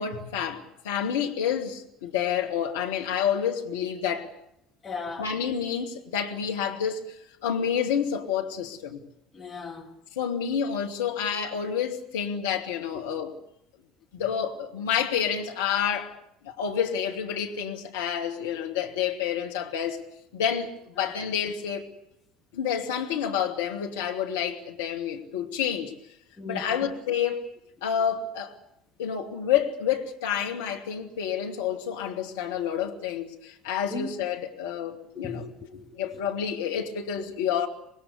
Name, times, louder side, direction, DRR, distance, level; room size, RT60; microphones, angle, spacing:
voice 1, 0.0-4.3 5.2-9.0 10.2-13.4 14.1-16.2 16.4-20.0 20.3-21.8 22.5-25.9 26.4-27.5 27.8-28.5 29.0-35.5 36.0-37.7, left 8 dB, 70° left, 2.3 m, -29 dB
voice 2, 4.8-5.3 9.3-9.9 26.4-26.6 33.9-34.1 35.2-36.1, left 3 dB, 25° left, 3.5 m, -37 dB
25.5 x 20.5 x 8.2 m
figure-of-eight pair, 60°, 0 cm